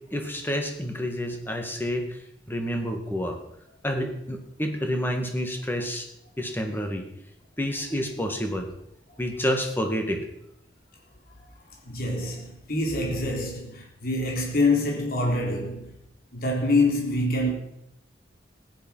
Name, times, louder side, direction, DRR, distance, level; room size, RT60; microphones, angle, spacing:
voice 1, 0.1-2.1 2.5-3.4 3.8-6.1 6.4-7.1 7.6-8.7 9.2-10.2, equal, 10° left, 2.1 m, -29 dB
voice 2, 11.8-15.9 16.3-17.5, left 2 dB, 55° left, 3.6 m, -25 dB
15.5 x 11.0 x 5.8 m
head